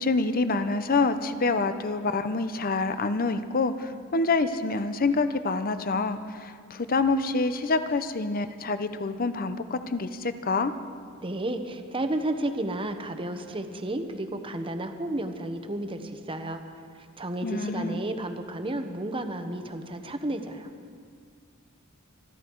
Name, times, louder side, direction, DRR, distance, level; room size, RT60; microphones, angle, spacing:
voice 1, 0.0-10.7 17.4-18.0, left 3 dB, 45° left, 11 dB, 0.7 m, -27 dB
voice 2, 11.2-16.6 17.2-20.7, right 1 dB, 25° right, 7 dB, 1.0 m, -32 dB
25.0 x 11.5 x 4.6 m, 2.1 s
head